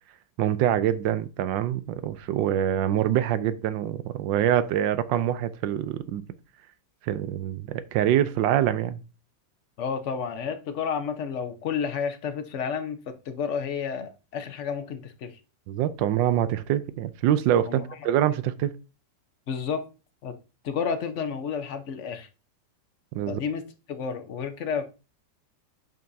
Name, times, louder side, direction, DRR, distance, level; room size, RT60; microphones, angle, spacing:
voice 1, 0.4-6.2 7.0-9.0 15.7-18.7 23.1-23.4, right 11 dB, 90° right, 1.3 m, -25 dB
voice 2, 9.8-15.4 17.6-17.8 19.5-19.8 20.2-20.3 20.6-22.3 23.3-23.6 23.9-24.8, left 6 dB, 50° left, 1.0 m, -31 dB
8.9 x 5.5 x 2.7 m
omnidirectional pair, 1.9 m